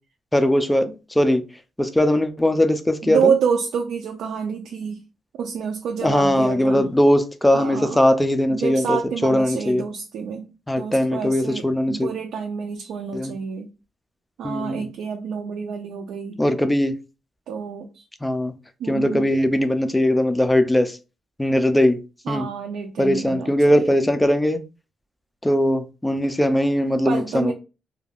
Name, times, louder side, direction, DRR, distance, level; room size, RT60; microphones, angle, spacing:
voice 1, 0.3-1.4 1.8-3.3 6.0-9.8 10.7-12.1 13.1-13.3 14.4-14.9 16.4-16.9 18.2-18.5 18.9-21.0 21.4-22.0 22.3-22.5 23.0-24.6 25.4-27.5, left 1 dB, 5° left, 0.3 m, -20 dB
voice 2, 3.0-5.0 5.4-6.9 7.5-8.0 8.5-10.5 10.8-13.7 14.4-16.4 17.5-18.0 18.8-19.3 22.3-24.0 27.1-27.5, right 6 dB, 80° right, 0.4 m, -28 dB
2.4 x 2.2 x 3.3 m
cardioid pair, 165°, 0 cm